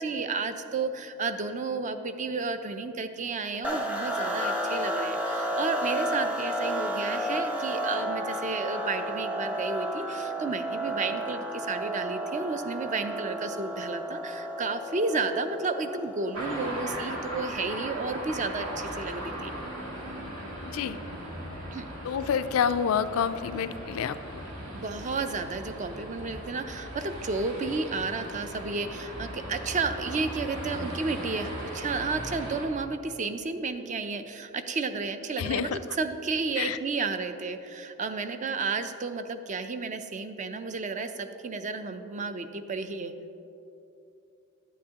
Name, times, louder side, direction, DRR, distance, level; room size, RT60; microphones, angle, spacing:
voice 1, 0.0-19.5 21.7-21.8 24.7-35.7 36.0-43.1, right 4 dB, 35° right, 9 dB, 0.4 m, -32 dB
sound 1, 3.6-17.0, right 1 dB, 5° right, 0.7 m, -32 dB
sound 2, 16.3-32.7, equal, 80° right, 1.6 m, -38 dB
voice 2, 20.6-21.0 22.0-24.2 35.4-35.8 36.6-36.8, left 7 dB, 85° left, 12 dB, 0.3 m, -28 dB
10.0 x 9.0 x 2.8 m, 2.8 s
head